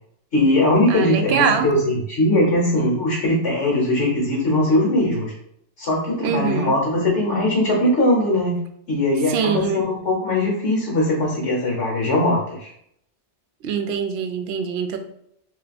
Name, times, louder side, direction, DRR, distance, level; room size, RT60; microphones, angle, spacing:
voice 1, 0.3-5.3 5.8-8.6 8.9-12.7, left 1 dB, 65° left, -2 dB, 1.3 m, -20 dB
voice 2, 0.9-1.7 6.2-6.8 9.3-9.9 13.6-15.0, right 6 dB, 65° right, 7 dB, 0.8 m, -23 dB
3.3 x 2.8 x 4.0 m, 0.72 s
omnidirectional pair, 1.3 m